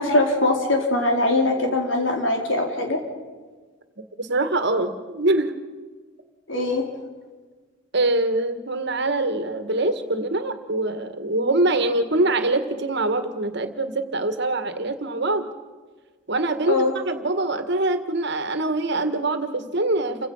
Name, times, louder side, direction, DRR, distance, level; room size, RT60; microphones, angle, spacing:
voice 1, 0.0-3.0 6.5-6.8 16.7-16.9, left 2 dB, 85° left, 2 dB, 4.1 m, -21 dB
voice 2, 4.2-5.5 7.9-15.5 16.3-20.3, right 2 dB, 65° right, 9 dB, 1.9 m, -24 dB
29.0 x 16.5 x 5.7 m, 1.4 s
head